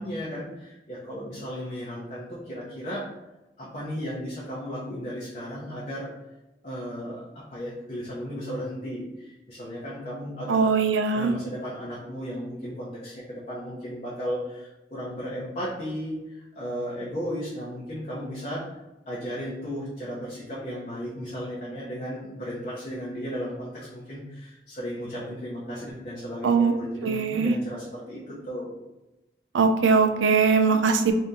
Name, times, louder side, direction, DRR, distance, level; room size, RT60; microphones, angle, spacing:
voice 1, 0.0-3.1 3.6-6.1 6.6-10.7 11.1-18.8 19.1-28.7, equal, 40° left, -7 dB, 0.7 m, -35 dB
voice 2, 10.5-11.3 26.4-26.7 27.0-27.5 29.5-31.1, right 5 dB, 90° right, 6 dB, 0.4 m, -21 dB
2.8 x 2.7 x 3.5 m, 0.99 s
head